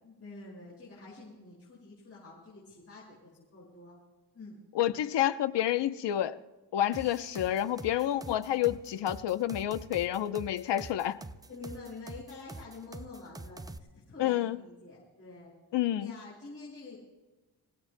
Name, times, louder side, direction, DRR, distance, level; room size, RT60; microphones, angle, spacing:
voice 1, 0.0-4.0 4.3-4.6 7.0-7.1 11.5-13.6 13.9-15.5 16.0-16.9, left 3 dB, 35° left, 5.6 m, -47 dB
voice 2, 4.7-6.4 6.7-11.2 14.2-14.6 15.7-16.1, left 12 dB, 80° left, 0.8 m, -29 dB
sound 1, 6.9-13.8, right 2 dB, 10° right, 0.4 m, -45 dB
27.5 x 17.5 x 2.2 m
wide cardioid pair, 150°, 41 cm